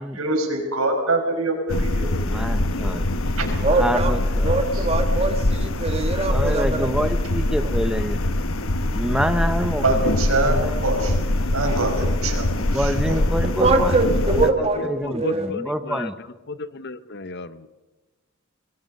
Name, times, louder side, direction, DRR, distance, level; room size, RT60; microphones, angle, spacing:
voice 1, 0.2-2.1 3.4-3.5 4.7-4.8 9.8-11.2 11.5-12.8, right 2 dB, 85° right, 3 dB, 5.6 m, -24 dB
sound 1, 1.7-14.5, left 1 dB, 70° left, 1.3 m, -23 dB
voice 2, 2.3-3.1 3.7-4.6 6.2-8.2 8.9-10.8 12.6-16.2, equal, 5° right, 8 dB, 0.9 m, -27 dB
voice 3, 3.6-4.1 4.4-6.9 13.6-14.0 14.4-15.5, right 3 dB, 30° right, 5 dB, 2.1 m, -22 dB
voice 4, 14.8-16.1 16.5-17.7, left 2 dB, 55° left, 14 dB, 0.9 m, -34 dB
25.0 x 22.0 x 5.4 m, 1.2 s
head